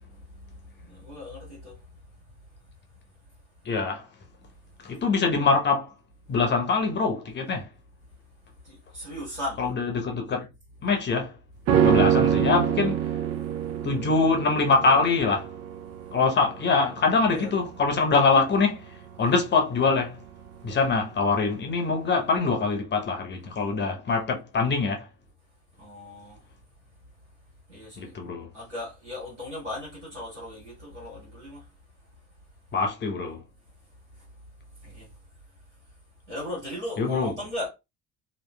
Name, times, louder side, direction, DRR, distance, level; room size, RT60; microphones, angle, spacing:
voice 1, 0.0-2.0 8.6-9.6 17.3-17.5 25.8-26.4 27.7-28.1 28.5-31.7 34.8-35.1 36.3-37.7, left 1 dB, 80° right, 1.6 m, -37 dB
voice 2, 3.6-4.1 4.8-5.9 6.3-7.7 9.6-10.5 10.8-11.3 11.8-13.0 13.8-15.5 16.1-18.8 19.2-20.2 20.6-25.1 28.0-28.5 32.7-33.4 37.0-37.3, left 4 dB, 30° left, 0.9 m, -24 dB
sound 1, 11.7-21.1 21.4-21.5, right 9 dB, 45° right, 0.5 m, -26 dB
3.0 x 2.6 x 2.2 m
figure-of-eight pair, 45°, 34 cm